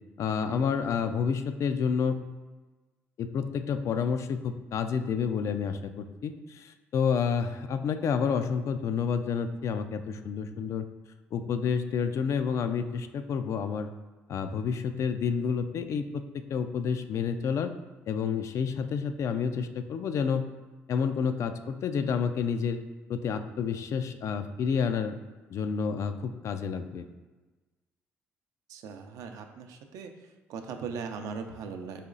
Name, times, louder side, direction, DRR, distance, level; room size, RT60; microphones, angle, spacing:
voice 1, 0.2-2.2 3.2-10.9 11.3-13.9 14.3-17.7 18.1-20.5 20.9-22.8 23.1-25.2 25.5-27.1, left 6 dB, 60° left, 9 dB, 0.3 m, -29 dB
voice 2, 28.7-30.1 30.5-32.1, right 5 dB, 75° right, 5 dB, 0.5 m, -39 dB
4.2 x 3.0 x 3.8 m, 1.2 s
supercardioid pair, 70°, 6 cm